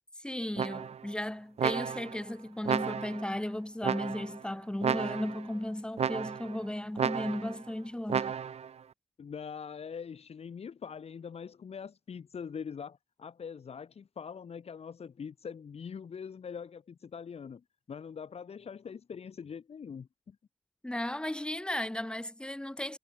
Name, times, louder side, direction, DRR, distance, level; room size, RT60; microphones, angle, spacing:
voice 1, 0.2-8.3 20.8-23.0, left 1 dB, 10° left, 3.8 m, -35 dB
sound 1, 0.6-1.1 1.6-2.2 2.6-3.3 3.8-4.4 4.8-5.5 6.0-6.6 7.0-7.6 8.1-8.7, right 7 dB, 75° right, 1.5 m, -32 dB
voice 2, 9.2-20.4, left 6 dB, 70° left, 6.6 m, -43 dB
wide cardioid pair, 120°, 11 cm